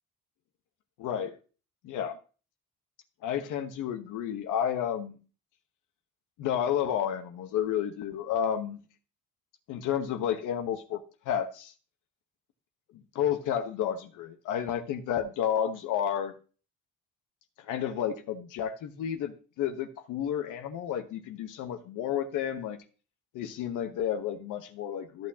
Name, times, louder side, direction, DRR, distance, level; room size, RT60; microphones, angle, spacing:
voice 1, 1.0-1.3 1.8-2.2 3.2-5.2 6.4-8.8 9.7-11.0 11.3-11.7 13.1-16.3 17.6-22.8 23.3-25.3, left 9 dB, 90° left, 1.1 m, -31 dB
13.5 x 6.2 x 2.8 m
cardioid pair, 90°, 30 cm